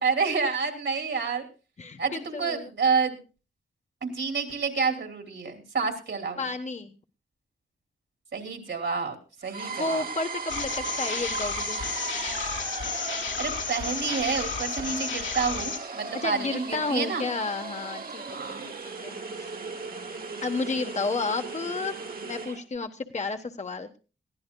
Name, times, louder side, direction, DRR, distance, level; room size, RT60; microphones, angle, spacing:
voice 1, 0.0-1.4 2.0-3.2 4.0-6.5 8.3-9.2 9.4-10.0 13.4-17.3 18.3-18.8, right 5 dB, 70° right, 5 dB, 2.9 m, -29 dB
voice 2, 1.8-2.7 6.4-6.9 9.7-11.8 16.2-19.5 20.4-24.0, left 3 dB, 35° left, 6 dB, 1.1 m, -32 dB
sound 1, 9.4-22.6, right 4 dB, 50° right, 1.4 m, -37 dB
sound 2, 10.5-15.8, left 5 dB, 75° left, 2.5 m, -32 dB
21.0 x 15.0 x 2.3 m, 0.33 s
wide cardioid pair, 110°, 20 cm